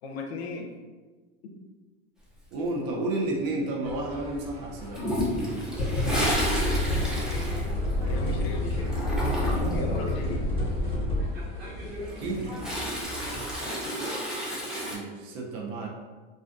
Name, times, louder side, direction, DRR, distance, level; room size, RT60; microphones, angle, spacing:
voice 1, 0.0-0.8 1.4-1.6 8.0-9.1 9.7-10.4 13.6-14.2, left 3 dB, 80° left, 2 dB, 0.6 m, -37 dB
voice 2, 2.5-5.1 12.2-12.6 14.9-15.9, right 2 dB, 60° right, -1 dB, 0.6 m, -31 dB
sound 1, 3.8-13.6, equal, 35° right, 1.3 m, -41 dB
Toilet flush, 4.9-8.4 8.7-9.9 11.9-15.0, equal, ahead, 0.5 m, -31 dB
sound 2, 5.8-11.2, left 1 dB, 15° left, 0.9 m, -28 dB
2.4 x 2.2 x 2.5 m, 1.3 s
hypercardioid pair, 100°, 31 cm